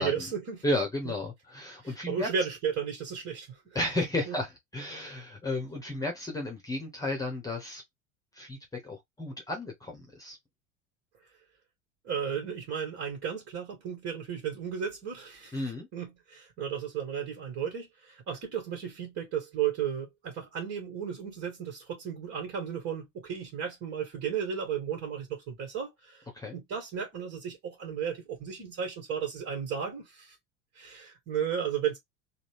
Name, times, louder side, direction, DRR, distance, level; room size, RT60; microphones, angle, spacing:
voice 1, 0.0-0.6 1.8-3.8 4.3-4.4 12.0-15.6 15.9-26.3 26.5-30.4 30.7-32.0, right 7 dB, 40° right, 1.9 m, -34 dB
voice 2, 0.6-2.3 3.7-7.8 8.3-8.6 8.8-10.4 15.5-15.9 26.3-26.5, left 1 dB, 10° left, 1.2 m, -33 dB
3.9 x 2.4 x 3.3 m
figure-of-eight pair, 75°, 39 cm